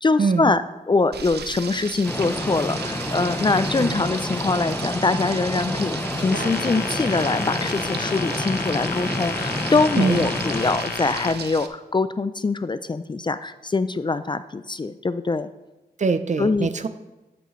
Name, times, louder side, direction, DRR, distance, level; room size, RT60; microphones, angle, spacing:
voice 1, 0.0-15.5 16.4-16.7, left 3 dB, 30° left, 13 dB, 0.4 m, -23 dB
Frying (food), 1.1-11.7, right 6 dB, 90° right, 0.7 m, -35 dB
sound 1, 2.0-10.8, left 1 dB, 10° left, 0.8 m, -29 dB
sound 2, 6.3-11.3, left 6 dB, 70° left, 1.0 m, -31 dB
voice 2, 10.0-10.3 16.0-16.9, right 4 dB, 45° right, 11 dB, 0.6 m, -23 dB
13.0 x 9.0 x 3.2 m, 1.1 s
wide cardioid pair, 105°, 17 cm